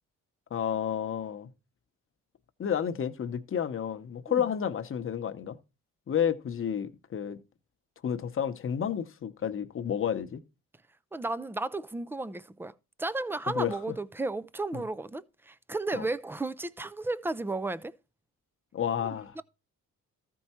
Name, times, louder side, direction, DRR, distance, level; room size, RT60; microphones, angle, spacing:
voice 1, 0.5-1.5 2.6-5.6 6.1-7.4 8.0-10.4 13.5-13.8 14.7-14.8 15.9-16.1 18.7-19.4, left 8 dB, 40° left, 0.9 m, -31 dB
voice 2, 11.1-12.7 13.0-17.9 19.0-19.4, right 2 dB, 5° right, 0.4 m, -34 dB
14.0 x 4.6 x 4.3 m
cardioid pair, 100°, 32 cm